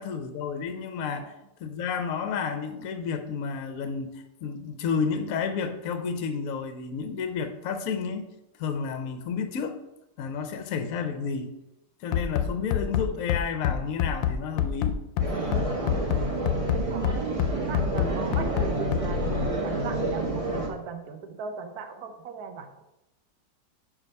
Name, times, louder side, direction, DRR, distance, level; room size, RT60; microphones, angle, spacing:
voice 1, 0.0-1.3 1.6-8.3 8.6-9.8 10.2-11.5 12.0-15.0, left 6 dB, 65° left, 7 dB, 0.9 m, -31 dB
Bass drum, 12.1-19.5, left 9 dB, 85° left, 1.3 m, -26 dB
sound 1, 15.2-20.7, right 2 dB, 25° right, 0.9 m, -29 dB
voice 2, 15.8-22.8, right 5 dB, 65° right, 7 dB, 1.2 m, -39 dB
5.5 x 5.0 x 5.3 m, 0.90 s
omnidirectional pair, 2.0 m